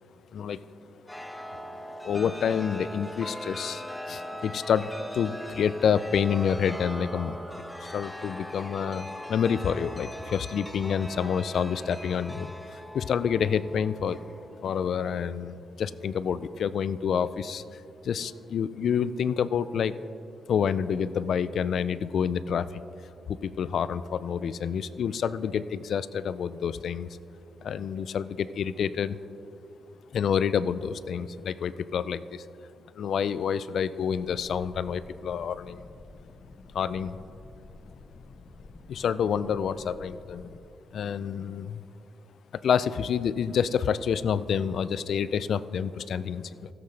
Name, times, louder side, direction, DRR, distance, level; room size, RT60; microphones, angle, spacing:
Chime, 1.1-15.3, equal, 5° left, 0.7 m, -40 dB
voice 1, 2.0-14.2 14.6-20.0 20.5-22.8 23.3-27.1 27.6-29.2 30.1-32.5 33.0-35.9 36.7-37.2 38.9-40.5 40.9-41.8 42.5-46.7, left 7 dB, 70° left, 16 dB, 0.3 m, -28 dB
sound 1, 34.2-40.6, left 3 dB, 55° left, 0.8 m, -49 dB
16.0 x 7.7 x 3.3 m, 2.7 s
cardioid pair, 80°, 0 cm